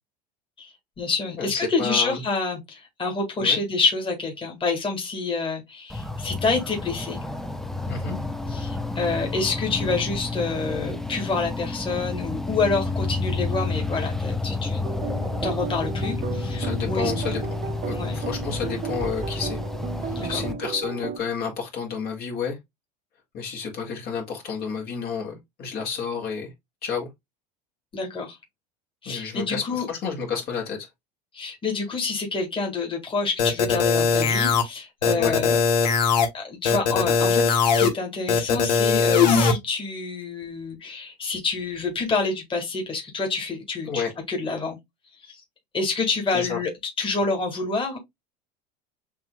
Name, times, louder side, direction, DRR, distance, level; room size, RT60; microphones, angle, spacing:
voice 1, 0.6-7.2 8.5-14.8 15.4-17.1 17.9-18.2 20.2-20.4 27.9-28.4 29.0-29.9 31.3-35.6 36.3-44.8 45.2-45.4 45.7-46.7 47.0-48.0, left 4 dB, 25° left, 2.1 m, -27 dB
voice 2, 1.4-2.2 3.4-3.6 7.9-8.2 16.6-17.4 17.9-19.6 20.0-22.6 23.3-26.5 26.8-27.1 29.1-30.9 35.2-35.4 43.9-44.1 46.3-46.6, left 6 dB, 45° left, 2.2 m, -30 dB
sound 1, 5.9-20.5, left 3 dB, ahead, 0.7 m, -30 dB
sound 2, 14.8-21.2, right 7 dB, 40° right, 0.9 m, -34 dB
sound 3, 33.4-34.6 35.0-36.3 36.6-37.9 38.3-39.5, left 5 dB, 85° left, 1.3 m, -20 dB
7.0 x 2.9 x 2.3 m
hypercardioid pair, 85°, 21 cm